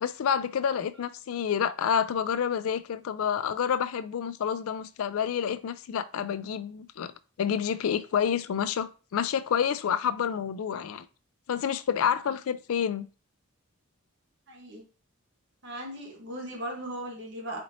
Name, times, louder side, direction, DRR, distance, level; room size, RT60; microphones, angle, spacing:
voice 1, 0.0-7.1 7.4-11.1 11.5-13.1, left 8 dB, 75° left, 0.4 m, -28 dB
voice 2, 14.5-14.8 15.6-17.6, right 1 dB, 55° right, 1.3 m, -38 dB
4.2 x 4.1 x 2.7 m
head